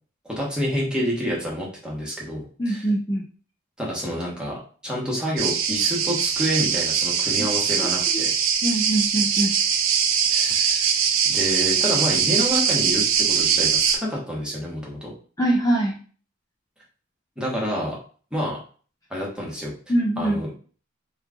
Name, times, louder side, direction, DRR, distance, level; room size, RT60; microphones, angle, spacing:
voice 1, 0.2-2.8 3.8-4.6 4.8-8.3 10.3-10.9 11.2-15.1 17.4-18.0 18.3-18.6 19.1-19.7 20.2-20.6, equal, 5° right, -4 dB, 1.1 m, -28 dB
voice 2, 2.6-3.2 8.1-8.2 8.6-9.5 15.4-16.0 19.9-20.4, right 1 dB, 15° left, -3 dB, 0.4 m, -23 dB
sound 1, 5.4-14.0, right 7 dB, 70° right, 0.5 m, -22 dB
3.0 x 2.4 x 3.6 m, 0.41 s
head